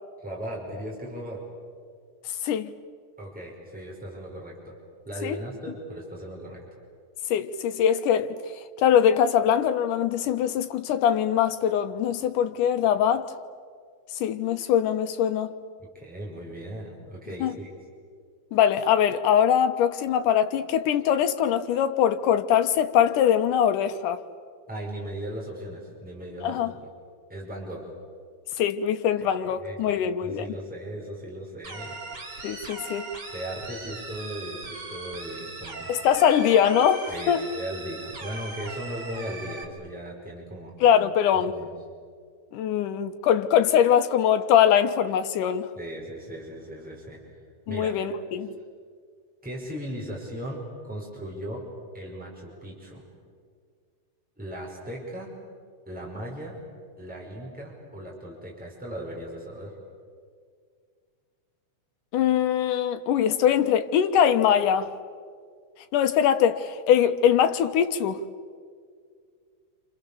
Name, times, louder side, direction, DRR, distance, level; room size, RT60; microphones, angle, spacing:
voice 1, 0.2-1.4 3.2-4.7 5.0-6.6 15.8-17.7 24.7-26.9 27.3-27.9 29.2-32.0 33.3-35.9 37.1-40.7 41.5-41.7 45.8-47.2 47.7-48.0 49.4-51.7 51.9-53.0 54.4-55.3 55.9-56.6 57.0-59.8, right 1 dB, ahead, 5.4 m, -37 dB
voice 2, 7.3-8.4 8.8-13.3 14.2-15.5 17.4-17.5 18.5-24.2 26.4-26.7 28.6-30.5 32.4-33.1 35.9-37.4 40.8-41.5 42.5-45.7 47.7-48.5 62.1-64.9 65.9-68.2, left 9 dB, 85° left, 2.6 m, -22 dB
sound 1, 31.6-39.6, right 3 dB, 35° right, 3.1 m, -39 dB
28.5 x 28.0 x 7.1 m
omnidirectional pair, 3.6 m